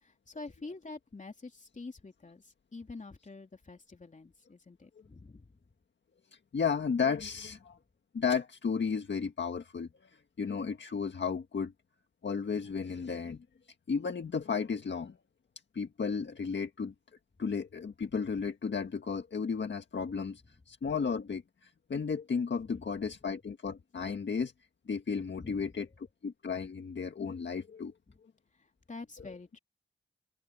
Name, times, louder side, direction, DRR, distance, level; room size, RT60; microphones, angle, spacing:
voice 1, 0.0-5.6 25.4-25.7 28.1-28.2 28.9-29.6, left 3 dB, 40° left, 3.2 m, -47 dB
voice 2, 6.5-7.8 8.1-10.1 10.4-11.7 12.2-13.4 13.9-15.2 15.7-16.9 17.4-24.5 24.9-25.9 26.2-27.9 29.2-29.3, left 5 dB, 65° left, 1.7 m, -33 dB
open air
cardioid pair, 70°, 20 cm